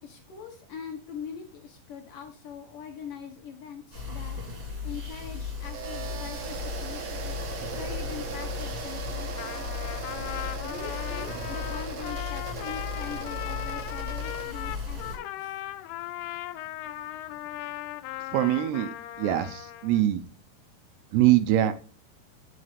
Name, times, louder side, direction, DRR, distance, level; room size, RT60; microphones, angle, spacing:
voice 1, 0.0-4.4 4.8-7.3 7.8-9.7 10.6-15.6, left 7 dB, 65° left, 3 dB, 2.4 m, -42 dB
sound 1, 3.9-15.2, left 5 dB, 30° right, 3.3 m, -36 dB
sound 2, 5.6-14.4, right 5 dB, 55° right, 2.1 m, -39 dB
Trumpet, 9.2-20.0, left 15 dB, 85° left, 2.4 m, -38 dB
voice 2, 18.3-18.9 19.2-20.2 21.1-21.7, right 13 dB, 80° right, 11 dB, 2.7 m, -23 dB
9.7 x 6.0 x 5.0 m, 0.39 s
omnidirectional pair, 4.9 m